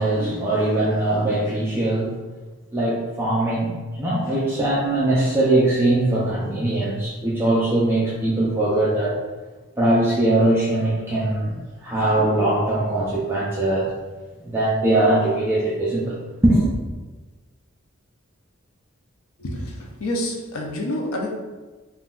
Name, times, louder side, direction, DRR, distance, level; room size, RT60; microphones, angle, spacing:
voice 1, 0.0-2.1 2.7-9.2 9.8-11.5 11.8-13.9 14.4-16.2 16.4-16.7, right 1 dB, 10° right, -7 dB, 0.4 m, -21 dB
voice 2, 19.4-21.3, left 1 dB, 85° left, 0 dB, 0.5 m, -28 dB
3.6 x 2.2 x 2.4 m, 1.2 s
head